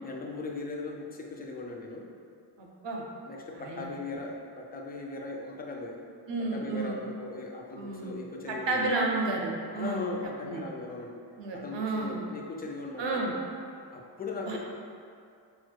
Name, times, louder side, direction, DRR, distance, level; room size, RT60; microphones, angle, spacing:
voice 1, 0.0-2.1 3.3-6.0 6.4-8.9 9.8-11.2 11.5-13.2 13.9-14.6, left 3 dB, 20° left, 0 dB, 0.3 m, -38 dB
voice 2, 2.6-3.0 3.6-3.9 6.3-7.0 7.7-8.2 8.7-10.1 10.4-10.6 11.4-12.2 13.0-13.3 14.5-14.6, right 3 dB, 70° right, -1 dB, 0.6 m, -31 dB
4.4 x 2.2 x 2.2 m, 2.3 s
cardioid pair, 60°, 46 cm